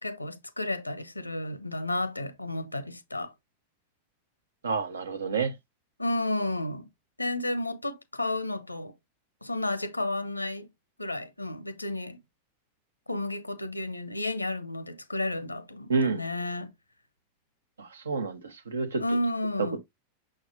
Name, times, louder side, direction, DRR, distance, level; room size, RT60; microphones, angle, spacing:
voice 1, 0.0-3.3 6.0-6.9 7.2-8.9 9.4-10.7 11.0-12.2 13.1-16.7 19.0-19.8, left 2 dB, 85° left, 0.7 m, -32 dB
voice 2, 4.6-5.6 15.9-16.2 17.8-19.0 19.6-19.8, right 4 dB, 70° right, 0.9 m, -29 dB
6.7 x 6.3 x 2.4 m
figure-of-eight pair, 90°, 0 cm